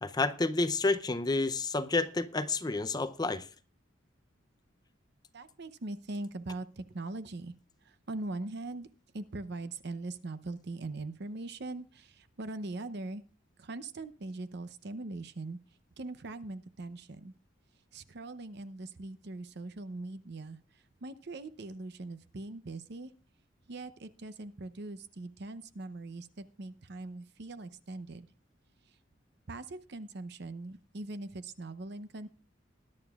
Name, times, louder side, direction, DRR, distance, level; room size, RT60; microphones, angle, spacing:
voice 1, 0.0-3.5, left 3 dB, 20° left, 0.6 m, -30 dB
voice 2, 5.3-7.5 8.1-8.9 9.1-12.1 12.4-13.2 13.6-15.6 16.0-17.3 17.9-20.6 21.0-23.1 23.7-28.3 29.5-32.3, right 2 dB, 60° right, 0.7 m, -41 dB
20.5 x 10.5 x 2.4 m
head